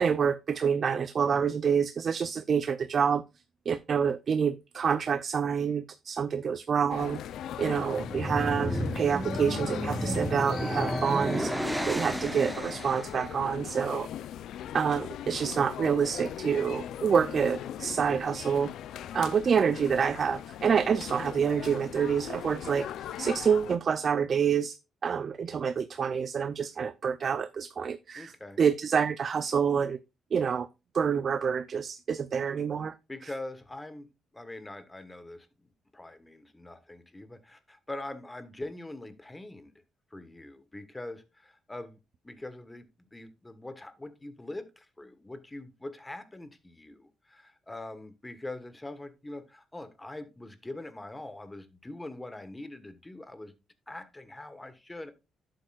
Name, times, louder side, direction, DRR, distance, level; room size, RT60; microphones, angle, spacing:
voice 1, 0.0-3.2 3.7-7.2 7.6-14.1 14.7-18.7 19.1-24.8 25.0-30.0 30.3-30.7 30.9-32.9, right 7 dB, 50° right, 0.4 m, -27 dB
sound 1, 6.9-23.8, left 10 dB, 75° left, 0.5 m, -39 dB
sound 2, 7.8-13.2, equal, 5° right, 1.0 m, -32 dB
voice 2, 28.1-28.6 33.1-34.1 34.3-39.7 40.1-42.0 42.2-53.5 53.9-55.1, left 2 dB, 15° left, 1.2 m, -43 dB
11.5 x 7.6 x 2.4 m
cardioid pair, 90°, 0 cm